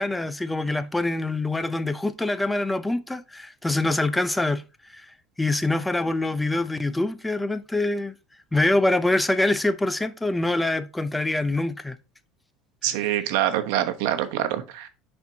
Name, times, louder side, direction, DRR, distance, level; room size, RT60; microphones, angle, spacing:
voice 1, 0.0-4.6 4.9-5.1 5.4-8.1 8.5-12.0, left 2 dB, 10° left, 0.6 m, -25 dB
voice 2, 12.8-14.9, right 12 dB, 75° right, 1.0 m, -25 dB
10.5 x 4.4 x 2.8 m
supercardioid pair, 115°, 0 cm